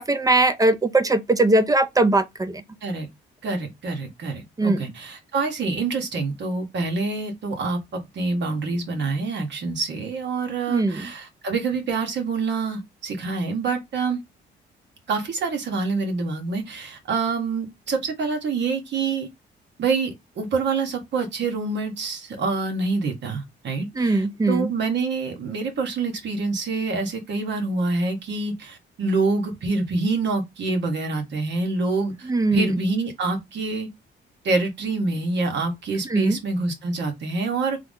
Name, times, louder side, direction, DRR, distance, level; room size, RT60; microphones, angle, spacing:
voice 1, 0.0-2.6 4.6-4.8 10.7-11.1 24.0-24.7 32.3-32.7 36.1-36.4, right 2 dB, 20° right, 0.5 m, -20 dB
voice 2, 3.4-7.8 8.1-14.2 15.1-19.3 19.8-33.9 34.4-37.8, right 3 dB, 65° right, 1.4 m, -26 dB
3.5 x 2.0 x 3.6 m
cardioid pair, 90°, 20 cm